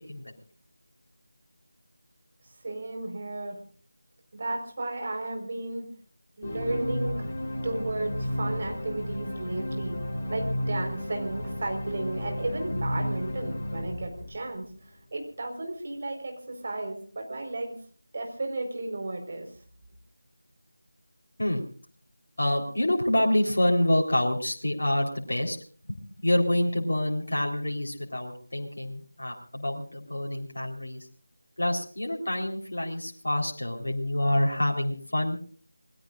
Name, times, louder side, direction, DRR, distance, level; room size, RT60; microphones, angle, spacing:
voice 1, 2.6-3.6 4.3-5.9 6.4-7.3 7.6-9.9 10.3-17.8 18.1-19.5, right 2 dB, 35° right, 4 dB, 4.5 m, -34 dB
sound 1, 6.4-14.9, left 1 dB, 25° left, 3.7 m, -33 dB
voice 2, 22.4-25.6 26.2-31.1 31.6-35.4, left 1 dB, 55° left, 0 dB, 3.9 m, -27 dB
27.5 x 20.0 x 2.5 m, 0.43 s
figure-of-eight pair, 165°, 0 cm